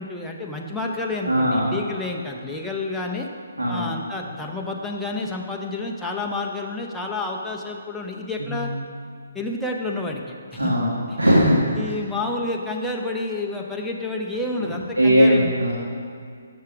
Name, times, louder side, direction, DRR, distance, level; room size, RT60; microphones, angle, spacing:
voice 1, 0.0-3.3 3.7-8.7 9.3-10.7 11.1-11.2 11.7-15.5, left 2 dB, 5° left, -2 dB, 0.6 m, -29 dB
voice 2, 1.3-1.7 3.6-3.8 8.4-8.6 10.6-10.9 11.2-11.6 15.0-15.7, equal, 90° right, -5 dB, 1.4 m, -18 dB
7.0 x 6.4 x 4.8 m, 2.2 s
figure-of-eight pair, 140°, 0 cm